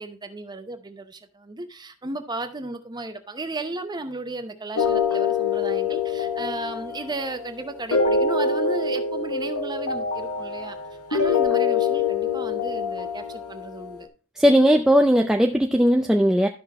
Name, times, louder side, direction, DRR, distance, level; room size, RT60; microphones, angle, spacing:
voice 1, 0.0-10.8 11.1-14.1, right 2 dB, 20° right, 0.8 m, -34 dB
sound 1, 4.8-13.9, left 5 dB, 80° left, 1.2 m, -25 dB
voice 2, 14.4-16.5, equal, ahead, 0.4 m, -18 dB
12.5 x 5.7 x 3.0 m
head